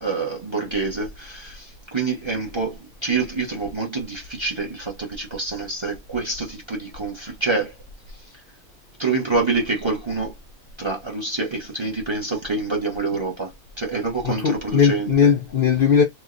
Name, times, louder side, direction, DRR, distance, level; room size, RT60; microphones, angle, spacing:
voice 1, 0.0-7.7 8.3-8.4 9.0-10.3 10.8-13.5 13.8-15.1, right 3 dB, 25° right, 0.7 m, -26 dB
voice 2, 14.2-16.0, left 7 dB, 70° left, 0.5 m, -18 dB
3.1 x 2.1 x 3.7 m
omnidirectional pair, 1.5 m